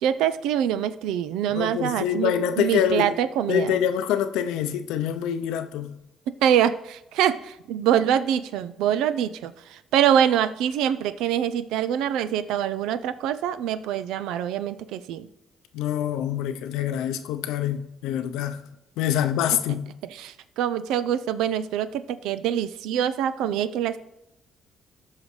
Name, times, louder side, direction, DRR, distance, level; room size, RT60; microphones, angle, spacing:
voice 1, 0.0-3.8 6.3-15.3 19.7-19.8 20.2-24.0, right 9 dB, 85° right, 0.4 m, -25 dB
voice 2, 1.5-3.2 3.5-5.9 15.7-18.6 19.0-19.9, left 9 dB, 90° left, 0.6 m, -25 dB
14.5 x 5.7 x 3.2 m
cardioid pair, 80°, 0 cm